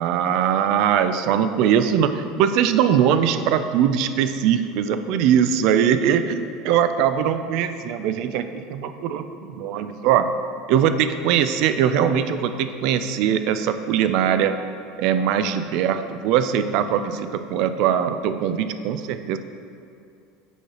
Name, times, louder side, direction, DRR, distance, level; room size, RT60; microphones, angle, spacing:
voice 1, 0.0-10.3 10.7-14.6 15.0-19.4, right 8 dB, 65° right, 10 dB, 0.3 m, -21 dB
7.9 x 4.7 x 2.9 m, 2.4 s
supercardioid pair, 120°, 0 cm